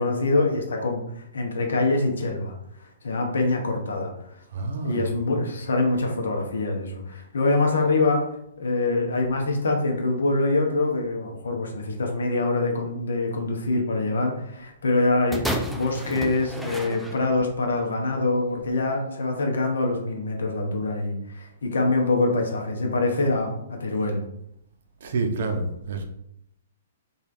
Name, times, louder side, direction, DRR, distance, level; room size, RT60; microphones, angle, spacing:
voice 1, 0.0-2.5 2.8-4.3 4.8-8.3 8.6-24.2, left 2 dB, 70° left, 2 dB, 0.6 m, -25 dB
voice 2, 4.5-5.1 25.0-26.0, right 3 dB, 60° right, 5 dB, 0.5 m, -28 dB
sound 1, 15.3-17.6 18.4-18.5, equal, ahead, 0.3 m, -31 dB
3.1 x 2.3 x 2.5 m, 0.76 s
figure-of-eight pair, 115°, 0 cm